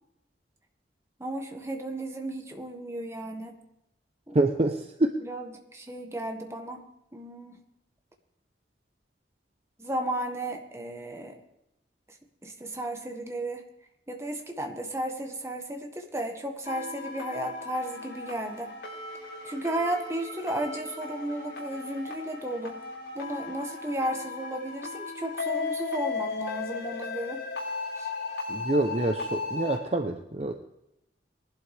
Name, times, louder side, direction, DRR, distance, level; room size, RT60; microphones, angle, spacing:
voice 1, 1.2-3.6 4.3-4.4 5.2-6.8 7.1-7.6 9.8-11.4 12.4-13.6 14.1-18.7 19.4-22.8 23.1-27.4 28.0-28.1, right 1 dB, 15° right, 3 dB, 1.5 m, -34 dB
voice 2, 4.3-5.2 28.5-30.5, right 2 dB, 35° right, 5 dB, 0.7 m, -26 dB
sound 1, 16.7-29.8, left 4 dB, 70° left, 4.5 m, -36 dB
20.0 x 11.5 x 3.4 m, 0.86 s
head